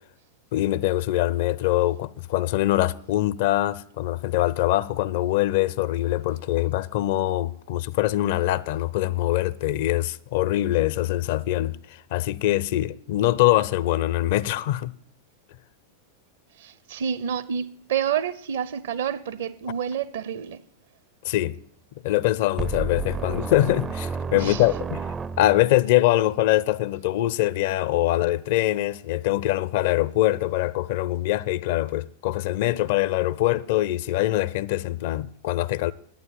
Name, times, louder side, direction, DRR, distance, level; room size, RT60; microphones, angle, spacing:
voice 1, 0.5-14.9 21.2-21.6 22.0-25.0 25.4-35.9, left 15 dB, 50° left, 0.5 m, -23 dB
voice 2, 16.6-20.6 24.3-24.6, right 8 dB, 60° right, 0.7 m, -29 dB
sound 1, 22.6-25.8, right 5 dB, 20° right, 0.4 m, -31 dB
11.0 x 9.4 x 7.7 m
figure-of-eight pair, 90°, 0 cm